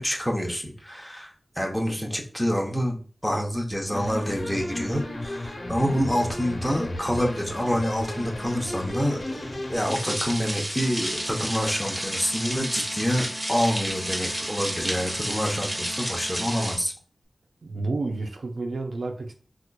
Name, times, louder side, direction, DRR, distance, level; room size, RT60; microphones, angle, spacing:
voice 1, 0.0-16.9, equal, ahead, 0.7 m, -27 dB
sound 1, 3.9-9.9, left 1 dB, 60° left, 0.9 m, -34 dB
sound 2, 9.7-16.8, equal, 20° right, 1.0 m, -31 dB
sound 3, 10.8-16.7, equal, 80° left, 0.5 m, -45 dB
voice 2, 17.6-19.3, right 3 dB, 80° right, 0.5 m, -30 dB
4.2 x 2.4 x 2.2 m
wide cardioid pair, 65°, 0 cm